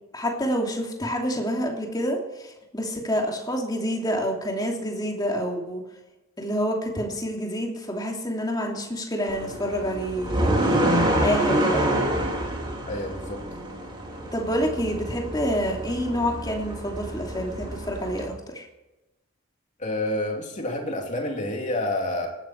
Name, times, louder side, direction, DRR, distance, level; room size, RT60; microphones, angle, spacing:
voice 1, 0.1-5.8 6.4-10.8 11.2-11.9 14.3-18.7, equal, 15° left, 0 dB, 2.9 m, -28 dB
sound 1, 9.3-18.3, right 1 dB, 20° right, 3.1 m, -27 dB
voice 2, 12.9-13.4 19.8-22.3, left 1 dB, 35° left, 1 dB, 3.4 m, -28 dB
19.0 x 13.0 x 4.7 m, 1.0 s
head